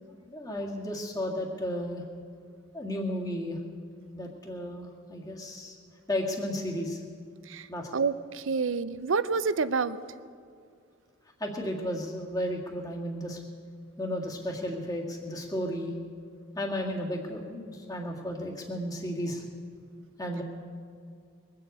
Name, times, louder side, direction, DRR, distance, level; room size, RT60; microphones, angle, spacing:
voice 1, 0.2-2.0 2.7-3.6 4.1-5.8 6.1-7.0 7.7-8.0 11.4-13.4 14.0-15.9 16.6-19.4 20.2-20.4, equal, 20° left, -1 dB, 1.9 m, -33 dB
voice 2, 7.9-10.0, right 4 dB, 75° right, 14 dB, 0.6 m, -28 dB
22.0 x 7.7 x 8.4 m, 2.2 s
head